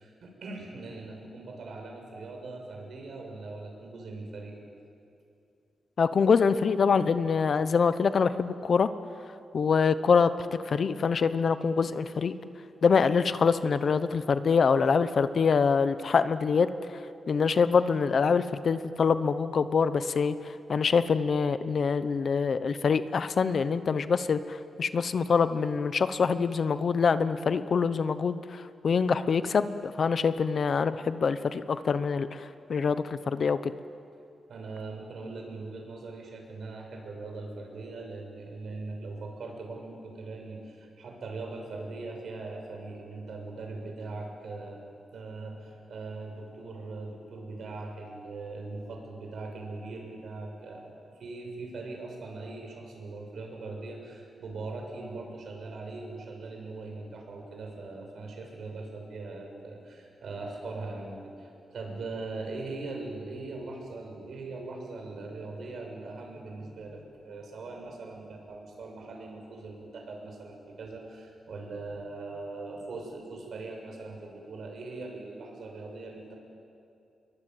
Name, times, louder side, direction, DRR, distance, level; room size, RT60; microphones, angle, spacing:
voice 1, 0.0-4.6 34.5-44.8 45.1-76.4, right 3 dB, 65° right, 2 dB, 6.4 m, -40 dB
voice 2, 6.0-8.9 9.5-12.3 12.8-16.7 17.3-33.7, left 5 dB, 50° left, 12 dB, 0.9 m, -25 dB
28.5 x 23.0 x 9.2 m, 2.6 s
wide cardioid pair, 160°, 0 cm